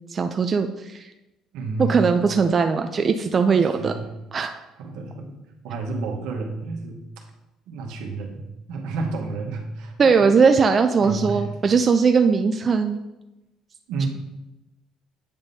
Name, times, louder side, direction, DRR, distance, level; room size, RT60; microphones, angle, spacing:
voice 1, 0.1-1.1 1.8-3.9 4.3-4.5 10.0-13.0 14.0-14.1, right 5 dB, 35° right, 6 dB, 0.4 m, -19 dB
voice 2, 1.5-2.1 3.0-3.1 3.5-4.1 4.8-5.3 5.6-7.2 7.7-8.4 8.7-9.9 10.2-10.3 11.0-11.5 13.9-14.1, right 3 dB, 85° right, 1 dB, 1.1 m, -30 dB
8.8 x 5.2 x 2.7 m, 0.99 s
cardioid pair, 110°, 0 cm